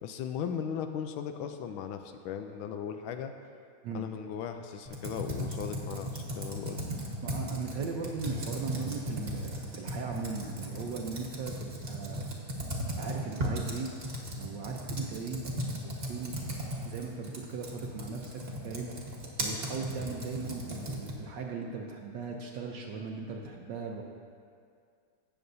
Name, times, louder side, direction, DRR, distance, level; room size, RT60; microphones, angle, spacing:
voice 1, 0.0-3.3 3.9-6.8, left 8 dB, 75° left, 7 dB, 1.3 m, -37 dB
Computer keyboard, 4.9-21.3, equal, 35° right, 1.2 m, -37 dB
voice 2, 7.2-12.3 13.0-13.9 14.4-15.4 16.0-16.3 16.8-18.9 19.4-24.0, right 5 dB, 70° right, 1 dB, 1.2 m, -38 dB
17.0 x 6.9 x 2.7 m, 2.2 s
omnidirectional pair, 2.4 m